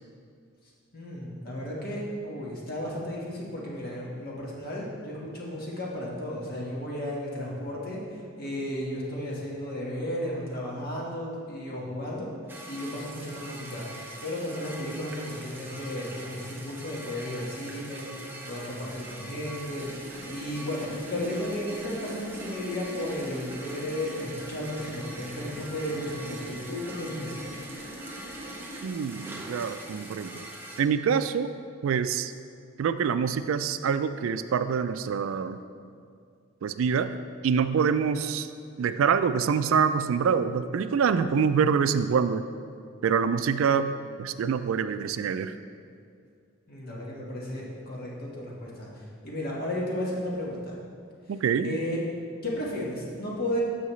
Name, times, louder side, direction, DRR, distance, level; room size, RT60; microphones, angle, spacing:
voice 1, 0.9-12.3 12.7-27.3 46.7-50.8 51.6-52.0 52.4-53.6, left 1 dB, 45° left, -4 dB, 1.5 m, -34 dB
sound 1, 12.5-30.8, right 1 dB, 10° right, 0.6 m, -43 dB
sound 2, 19.7-28.9, equal, 35° right, 1.0 m, -43 dB
voice 2, 28.8-30.5 30.8-31.5 31.8-32.3 32.8-35.6 36.6-37.1 37.4-38.5 38.8-42.4 43.0-43.9 44.2-45.5 51.3-51.8, right 6 dB, 70° right, 12 dB, 0.3 m, -25 dB
9.5 x 6.3 x 3.1 m, 2.3 s
head